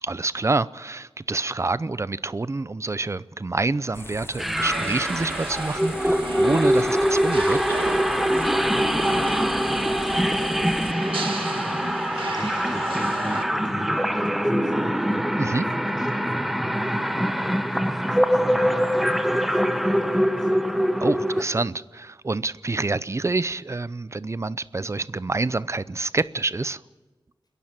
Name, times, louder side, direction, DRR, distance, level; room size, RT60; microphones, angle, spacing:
voice 1, 0.0-7.6 15.4-15.7 21.0-26.8, right 3 dB, 35° right, 0.6 m, -27 dB
sound 1, 3.9-10.9, left 2 dB, 25° left, 0.8 m, -41 dB
sound 2, 4.4-21.4, equal, ahead, 0.9 m, -23 dB
sound 3, 4.6-13.4, right 4 dB, 85° right, 1.8 m, -35 dB
voice 2, 8.3-20.7 21.3-21.5, equal, 50° left, 5.9 m, -44 dB
29.5 x 11.0 x 8.9 m
wide cardioid pair, 95°, 9 cm